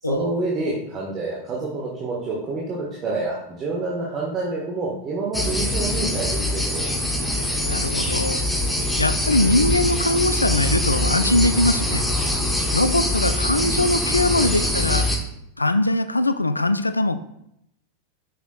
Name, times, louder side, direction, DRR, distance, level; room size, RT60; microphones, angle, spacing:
voice 1, 0.0-6.9, right 3 dB, 30° right, -4 dB, 1.4 m, -28 dB
sound 1, 5.3-15.2, left 1 dB, 5° left, 1.2 m, -23 dB
voice 2, 7.7-8.4 9.0-12.0 12.7-15.1 15.6-17.2, left 2 dB, 85° left, 12 dB, 0.3 m, -21 dB
8.0 x 6.0 x 2.3 m, 0.77 s
figure-of-eight pair, 90°, 0 cm